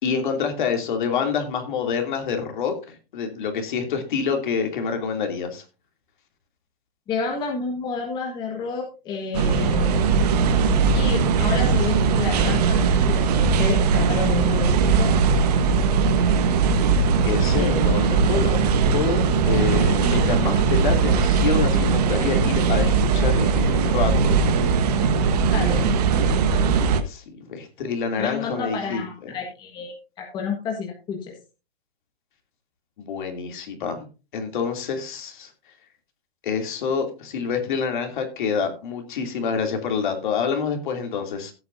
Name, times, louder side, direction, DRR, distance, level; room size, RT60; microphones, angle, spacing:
voice 1, 0.0-5.6 17.2-24.4 27.1-29.0 33.0-34.1 34.3-35.5 36.4-41.5, left 6 dB, 50° left, 4 dB, 2.9 m, -27 dB
voice 2, 7.1-10.0 10.9-15.2 17.5-18.0 25.5-25.9 28.2-31.3, left 5 dB, 15° left, 1 dB, 1.5 m, -30 dB
sound 1, 9.3-27.0, right 5 dB, 40° right, 1.3 m, -20 dB
16.5 x 8.8 x 2.7 m, 0.31 s
hypercardioid pair, 165°, 31 cm